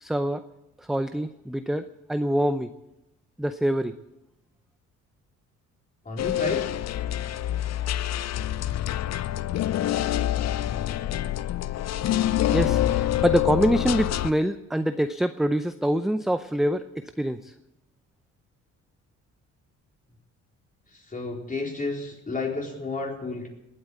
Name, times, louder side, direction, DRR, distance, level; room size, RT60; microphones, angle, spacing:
voice 1, 0.0-0.4 0.9-2.7 3.4-3.9 12.5-16.8 17.2-17.4, right 1 dB, ahead, 10 dB, 0.6 m, -25 dB
voice 2, 6.1-6.7 21.1-23.5, left 3 dB, 25° left, 0 dB, 4.1 m, -31 dB
sound 1, 6.2-14.3, left 12 dB, 60° left, 0.6 m, -26 dB
19.5 x 8.8 x 8.0 m, 0.92 s
cardioid pair, 90°, 30 cm